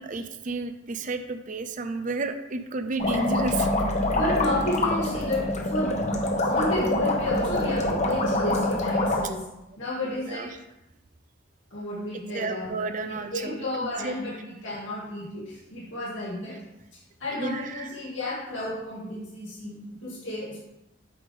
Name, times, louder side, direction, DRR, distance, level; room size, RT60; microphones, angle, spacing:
voice 1, 0.0-3.7 10.4-10.5 12.3-13.6 14.0-14.1 17.3-17.9, right 3 dB, 45° right, 7 dB, 0.6 m, -31 dB
sound 1, 3.0-9.2, left 1 dB, 40° left, 1.0 m, -25 dB
voice 2, 4.1-6.1 6.4-9.4 9.8-10.5 11.7-16.6 16.9-20.6, left 1 dB, 80° left, -7 dB, 2.1 m, -32 dB
8.6 x 3.5 x 5.3 m, 0.90 s
head